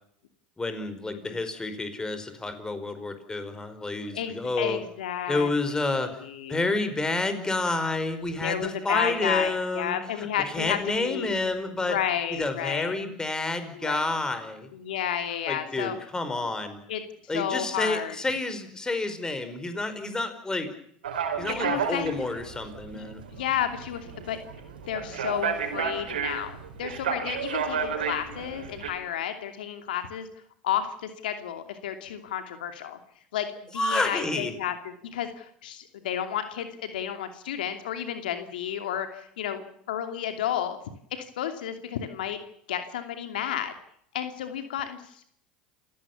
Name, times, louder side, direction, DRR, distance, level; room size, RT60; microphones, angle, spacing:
voice 1, 0.6-4.8 5.3-6.1 6.5-10.3 10.5-12.0 12.3-14.7 15.5-16.8 17.3-20.7 21.4-23.2 33.8-34.5, left 2 dB, 15° left, 10 dB, 5.1 m, -29 dB
voice 2, 4.1-6.6 8.4-11.4 11.8-12.9 13.7-14.0 14.7-16.0 16.9-17.0 17.3-18.2 21.5-22.2 22.9-23.1 23.3-24.4 24.8-30.3 30.6-33.0 33.3-33.5 33.7-40.8 41.1-42.4 42.7-43.7 44.1-45.3, left 10 dB, 80° left, 7 dB, 2.7 m, -32 dB
sound 1, 21.0-28.9, right 6 dB, 85° right, 4.7 m, -32 dB
29.0 x 17.0 x 7.2 m, 0.67 s
hypercardioid pair, 85°, 5 cm